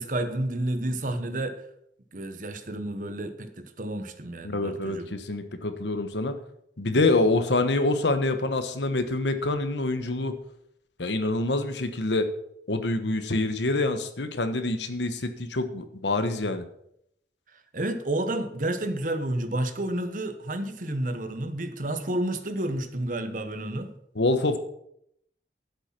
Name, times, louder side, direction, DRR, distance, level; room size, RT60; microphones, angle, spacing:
voice 1, 0.0-1.6 2.1-5.1 17.5-23.9, right 1 dB, 45° right, 8 dB, 1.1 m, -30 dB
voice 2, 4.4-6.4 6.8-10.4 11.0-12.3 12.7-16.6 24.1-24.6, left 2 dB, 85° left, 9 dB, 1.2 m, -26 dB
11.5 x 8.2 x 6.0 m, 0.74 s
head